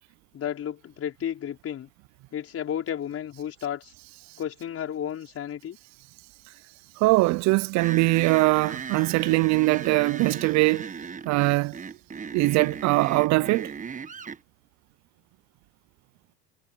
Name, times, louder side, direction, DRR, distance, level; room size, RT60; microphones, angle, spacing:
voice 1, 0.3-1.9 2.3-3.9 4.4-5.8, left 9 dB, 45° left, 5.5 m, -32 dB
voice 2, 7.0-10.9 11.3-11.8 12.3-13.7, right 22 dB, 55° right, 0.6 m, -22 dB
sound 1, 7.8-14.4, right 6 dB, 25° right, 1.3 m, -37 dB
hypercardioid pair, 75°, 32 cm